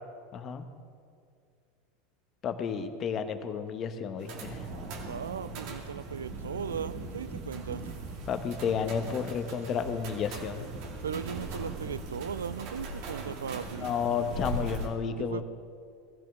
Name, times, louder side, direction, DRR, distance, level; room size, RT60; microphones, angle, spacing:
voice 1, 0.3-0.7 2.4-4.6 8.3-10.7 13.7-15.4, left 6 dB, 40° left, 8 dB, 1.3 m, -32 dB
sound 1, 4.2-14.9, right 2 dB, 55° right, 2.5 m, -39 dB
voice 2, 5.1-7.8 11.0-13.9 15.1-15.4, right 7 dB, 80° right, 17 dB, 0.4 m, -37 dB
20.0 x 15.0 x 3.7 m, 2.3 s
figure-of-eight pair, 80°, 0 cm